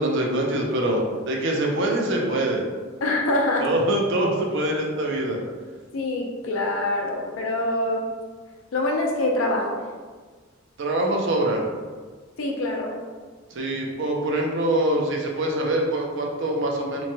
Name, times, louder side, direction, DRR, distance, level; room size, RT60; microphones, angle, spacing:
voice 1, 0.0-2.6 3.6-5.4 10.8-11.6 13.5-17.0, right 1 dB, 60° right, 0 dB, 0.5 m, -24 dB
voice 2, 3.0-3.7 5.9-8.1 8.7-9.8 12.4-13.0, left 1 dB, 75° left, 0 dB, 0.5 m, -25 dB
3.1 x 2.2 x 2.7 m, 1.4 s
head